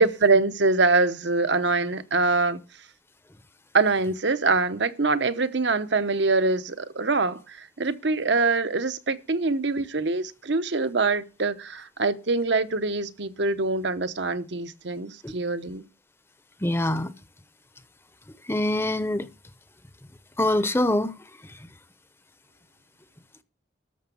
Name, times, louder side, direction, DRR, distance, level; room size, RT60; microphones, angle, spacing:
voice 1, 0.0-2.6 3.7-15.8, right 3 dB, 65° right, 0.9 m, -24 dB
voice 2, 16.6-17.1 18.5-19.3 20.4-21.1, left 1 dB, 15° left, 0.7 m, -24 dB
13.0 x 7.0 x 7.0 m
head